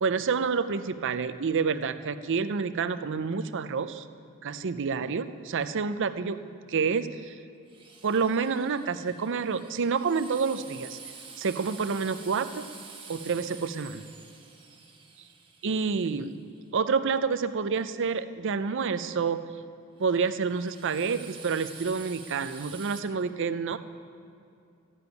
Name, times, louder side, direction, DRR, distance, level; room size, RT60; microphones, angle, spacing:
voice 1, 0.0-4.1 4.4-6.4 6.7-7.3 8.0-11.0 11.4-12.7 13.1-14.1 15.6-16.3 16.7-19.4 20.0-23.8, right 5 dB, 60° right, 12 dB, 0.5 m, -28 dB
Drill, 7.7-16.6 20.0-23.0, right 5 dB, 25° right, 1.4 m, -48 dB
13.5 x 7.0 x 9.4 m, 2.5 s
head